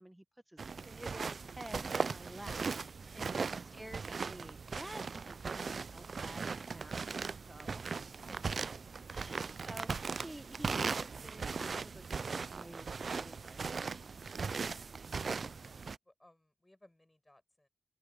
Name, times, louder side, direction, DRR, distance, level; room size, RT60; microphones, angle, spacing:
voice 1, 0.0-7.9 9.1-14.1, right 1 dB, 10° right, 1.1 m, -51 dB
sound 1, 0.6-16.0, right 5 dB, 50° right, 0.3 m, -39 dB
sound 2, 1.8-13.8, right 5 dB, 70° right, 2.9 m, -64 dB
voice 2, 3.0-3.9 8.6-9.3 15.5-17.7, left 1 dB, 10° left, 5.9 m, -63 dB
open air
wide cardioid pair, 140°, 0 cm